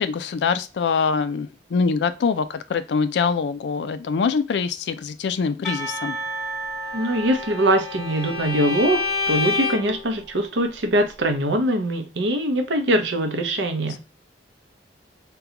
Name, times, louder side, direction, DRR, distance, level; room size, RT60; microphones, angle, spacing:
voice 1, 0.0-6.2, left 5 dB, 70° left, 0.4 m, -24 dB
Percussion / Church bell, 5.6-10.1, right 1 dB, ahead, 1.8 m, -34 dB
voice 2, 6.9-9.0 9.3-14.0, right 1 dB, 85° right, 0.6 m, -22 dB
Bowed string instrument, 7.0-10.0, left 3 dB, 55° left, 1.7 m, -28 dB
3.7 x 2.2 x 2.8 m
head